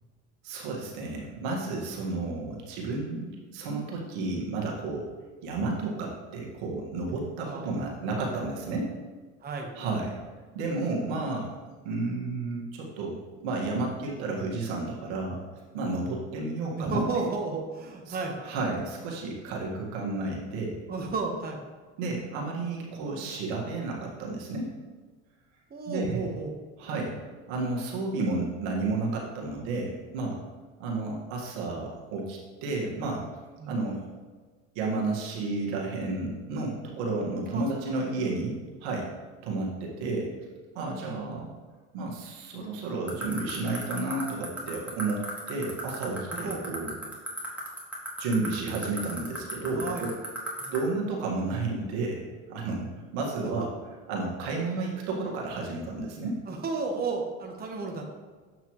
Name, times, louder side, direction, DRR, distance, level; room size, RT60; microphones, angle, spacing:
voice 1, 0.4-5.1 5.4-8.9 9.7-10.2 10.5-11.5 11.8-15.4 15.7-17.0 18.1-18.2 18.4-20.8 22.0-24.7 25.9-26.2 26.8-27.2 27.5-30.4 30.8-33.2 33.7-34.0 34.7-39.1 39.4-40.3 40.7-41.5 41.9-46.9 48.2-50.2 50.7-52.2 52.5-53.7 54.1-56.4, right 3 dB, 80° right, -2 dB, 1.7 m, -32 dB
voice 2, 7.4-8.1 9.4-9.7 16.7-18.4 20.9-21.6 25.7-26.5 33.6-33.8 37.5-37.7 38.0-38.1 41.0-41.1 46.3-46.6 49.7-50.0 50.6-50.7 53.6-53.7 54.7-54.8 56.5-58.1, right 3 dB, 30° right, 1 dB, 1.1 m, -33 dB
sound 1, 43.1-50.8, right 2 dB, 5° right, 2.1 m, -34 dB
7.5 x 5.7 x 3.1 m, 1.4 s
supercardioid pair, 95°, 33 cm